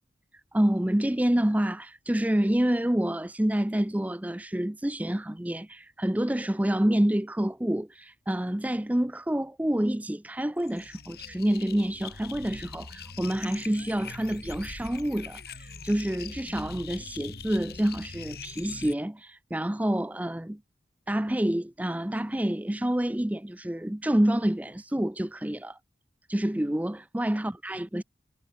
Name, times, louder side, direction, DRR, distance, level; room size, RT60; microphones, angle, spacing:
voice 1, 0.5-20.6 21.1-25.8 26.3-28.0, right 1 dB, 10° right, 0.5 m, -28 dB
sound 1, 10.6-18.9, left 5 dB, 60° left, 2.7 m, -42 dB
head